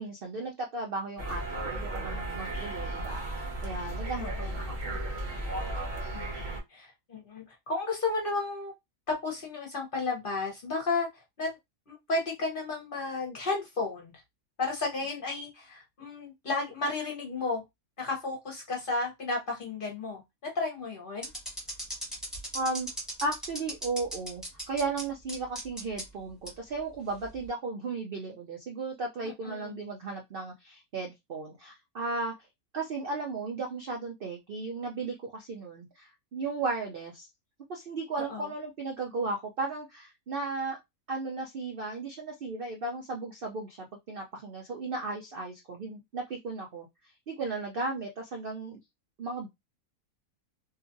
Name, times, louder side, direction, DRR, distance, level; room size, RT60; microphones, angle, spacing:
voice 1, 0.0-5.0 22.5-22.9 23.2-32.5 32.7-37.3 37.7-40.8 41.1-48.8 49.2-49.5, right 3 dB, 65° right, 1 dB, 0.5 m, -35 dB
sound 1, 1.2-6.6, right 1 dB, 35° right, 0.9 m, -35 dB
voice 2, 4.2-4.5 6.1-8.7 9.1-11.5 11.9-14.2 14.6-17.6 18.0-21.3 29.2-29.8 38.2-38.5, left 3 dB, 45° left, 0 dB, 0.8 m, -33 dB
sound 2, 21.2-25.0 25.3-26.0 26.5-26.6 27.2-27.5, equal, ahead, 1.0 m, -37 dB
2.7 x 2.4 x 2.5 m, 0.19 s
omnidirectional pair, 1.6 m